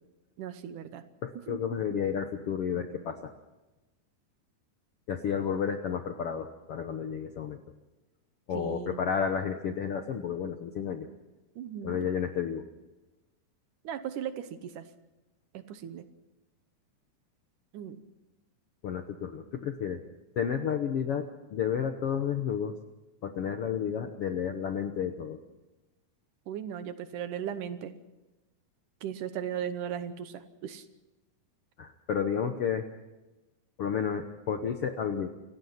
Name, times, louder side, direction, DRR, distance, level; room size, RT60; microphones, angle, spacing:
voice 1, 0.4-1.0 1.5-1.6 8.5-9.0 11.6-12.0 13.8-14.8 15.5-16.1 17.7-18.0 26.5-27.9 29.0-30.8, right 9 dB, 70° right, 11 dB, 2.4 m, -37 dB
voice 2, 1.2-3.3 5.1-7.6 8.5-11.1 11.8-12.6 18.8-20.0 20.3-22.8 23.2-25.4 31.8-32.8 33.8-35.3, left 7 dB, 65° left, 6 dB, 1.4 m, -31 dB
28.0 x 16.0 x 5.8 m, 1.0 s
omnidirectional pair, 4.0 m